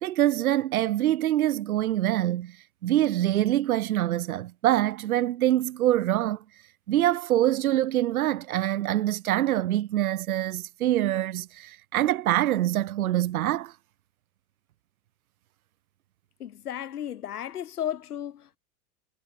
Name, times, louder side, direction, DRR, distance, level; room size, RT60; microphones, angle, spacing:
voice 1, 0.0-2.6 2.8-6.4 6.9-13.7, right 13 dB, 70° right, 0.8 m, -25 dB
voice 2, 16.4-18.6, left 10 dB, 80° left, 0.8 m, -34 dB
figure-of-eight pair, 95°, 45 cm